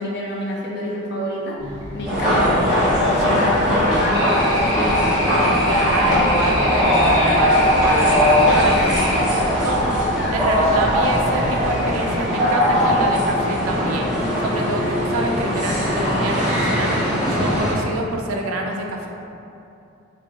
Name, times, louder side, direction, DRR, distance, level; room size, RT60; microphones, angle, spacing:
voice 1, 0.0-1.6 1.9-5.7 6.0-6.1 10.1-10.4, left 1 dB, 50° left, -3 dB, 0.5 m, -27 dB
sound 1, 1.6-11.9, equal, 65° right, 1.0 m, -34 dB
sound 2, 2.0-17.7, equal, 5° right, 0.9 m, -19 dB
sound 3, 4.1-9.2, left 1 dB, 25° left, 0.9 m, -26 dB
voice 2, 5.7-9.8 10.3-14.1 14.4-19.1, right 2 dB, 80° right, 1 dB, 0.3 m, -27 dB
4.1 x 2.1 x 3.7 m, 2.7 s
head